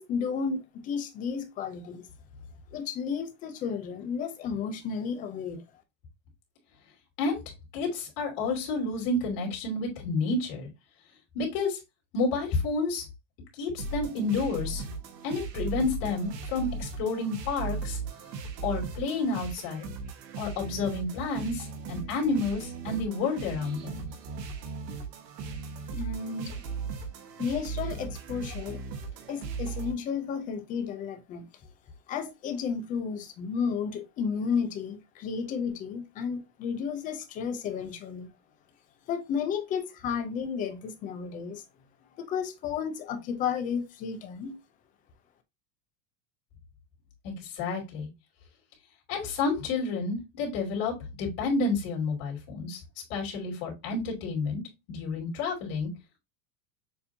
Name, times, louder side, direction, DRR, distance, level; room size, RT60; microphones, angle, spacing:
voice 1, 0.0-2.1 2.7-5.6 25.9-26.5 27.4-28.8 29.3-31.5 32.1-38.3 39.1-41.6 42.2-44.5, left 6 dB, 20° left, 0.4 m, -32 dB
voice 2, 7.7-10.7 11.3-11.8 12.1-13.0 13.6-14.8 15.2-18.0 18.6-19.9 20.4-24.0 47.2-48.1 49.1-52.8 53.1-54.6 54.9-55.9, left 3 dB, 45° left, 2.4 m, -30 dB
sound 1, 13.8-29.9, right 4 dB, 80° right, 1.3 m, -37 dB
6.8 x 2.6 x 2.6 m
supercardioid pair, 150°, 49 cm